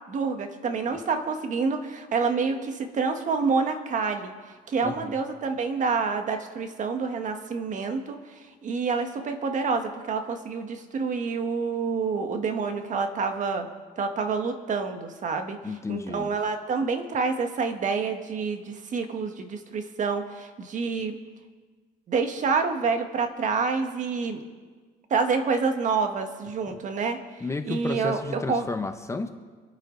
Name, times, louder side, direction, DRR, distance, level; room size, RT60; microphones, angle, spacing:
voice 1, 0.1-4.3 4.7-8.2 8.6-13.7 14.0-15.6 15.9-21.1 22.1-24.4 25.1-27.2 27.6-28.7, right 5 dB, 45° right, 6 dB, 1.6 m, -27 dB
voice 2, 4.8-5.2 15.6-16.3 27.4-29.3, left 3 dB, 15° left, 7 dB, 1.0 m, -32 dB
26.5 x 9.0 x 4.0 m, 1.4 s
cardioid pair, 110°, 17 cm